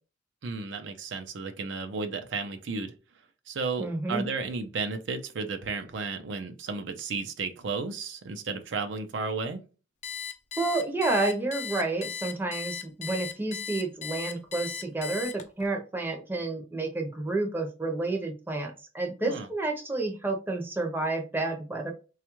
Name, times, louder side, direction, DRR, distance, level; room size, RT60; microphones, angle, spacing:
voice 1, 0.4-2.9 3.5-9.6 19.2-19.5, right 4 dB, 70° right, 0.5 m, -33 dB
voice 2, 3.8-4.2 10.6-21.9, right 2 dB, 10° right, 0.6 m, -30 dB
Alarm, 10.0-15.7, left 7 dB, 35° left, 0.4 m, -37 dB
4.2 x 2.3 x 2.9 m
head